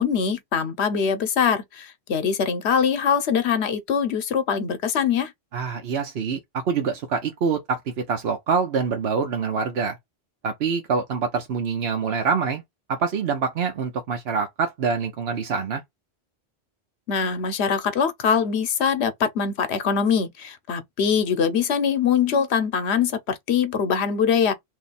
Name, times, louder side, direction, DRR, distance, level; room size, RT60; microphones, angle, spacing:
voice 1, 0.0-5.3 17.1-24.5, left 7 dB, 90° left, 1.0 m, -23 dB
voice 2, 5.5-10.0 10.4-12.6 12.9-15.8, right 5 dB, 70° right, 1.0 m, -25 dB
3.1 x 2.7 x 4.0 m
omnidirectional pair, 1.1 m